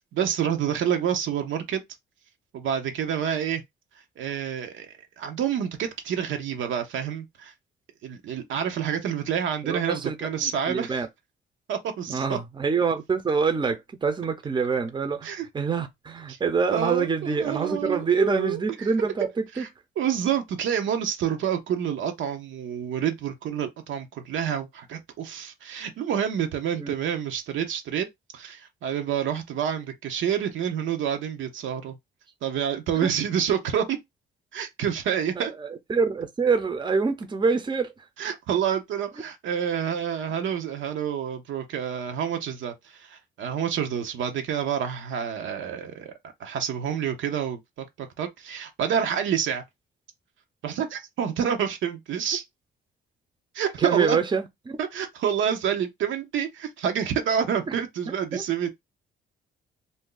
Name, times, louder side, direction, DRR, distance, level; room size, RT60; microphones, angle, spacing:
voice 1, 0.1-1.8 2.5-3.6 4.2-7.5 8.0-10.9 11.7-12.4 15.2-15.4 16.3-16.4 16.7-18.6 19.6-19.7 20.0-28.1 28.3-32.0 32.4-34.0 34.5-35.5 38.2-46.1 46.4-49.6 50.6-52.4 53.5-54.2 54.9-58.7, right 8 dB, 75° right, 0.8 m, -28 dB
voice 2, 9.6-10.2 10.4-11.1 12.1-19.7 26.8-26.9 32.9-33.1 35.3-38.1 53.8-54.8 58.1-58.4, right 5 dB, 25° right, 0.7 m, -26 dB
2.6 x 2.2 x 3.8 m
cardioid pair, 90°, 20 cm